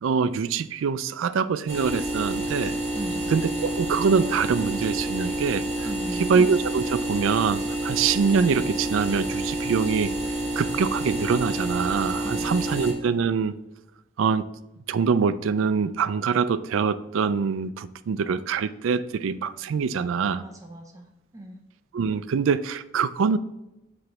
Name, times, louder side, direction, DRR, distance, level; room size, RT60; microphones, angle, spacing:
voice 1, 0.0-2.8 3.3-5.7 6.2-10.1 10.6-13.6 14.2-14.4 14.9-20.4 21.9-23.4, right 5 dB, 80° right, 14 dB, 0.4 m, -24 dB
sound 1, 1.7-12.9, right 1 dB, 60° right, 2.1 m, -29 dB
voice 2, 2.9-3.3 5.8-6.3 12.2-12.8 20.4-21.6, right 1 dB, 15° right, 2 dB, 0.6 m, -38 dB
7.6 x 3.1 x 4.6 m, 0.92 s
head